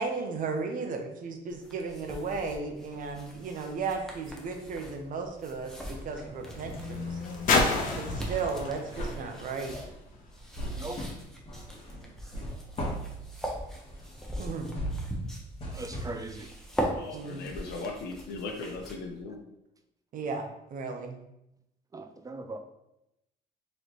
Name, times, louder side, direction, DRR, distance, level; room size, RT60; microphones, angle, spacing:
voice 1, 0.0-7.2 7.9-9.8 14.4-14.7 17.1-17.4 20.1-21.2, right 4 dB, 50° right, 4 dB, 0.8 m, -35 dB
sound 1, 1.5-19.2, equal, 5° left, 0.8 m, -41 dB
sound 2, 3.1-4.2 4.5-18.2 18.6-18.7, equal, 35° left, 1.3 m, -40 dB
sound 3, 4.0-10.5 11.3-11.4, left 3 dB, 50° left, 0.8 m, -33 dB
voice 2, 15.7-16.5 21.9-22.6, right 2 dB, 20° right, 6 dB, 0.3 m, -39 dB
voice 3, 16.9-19.4, left 3 dB, 85° left, 3 dB, 0.8 m, -38 dB
4.1 x 3.2 x 3.0 m, 0.85 s
cardioid pair, 110°, 17 cm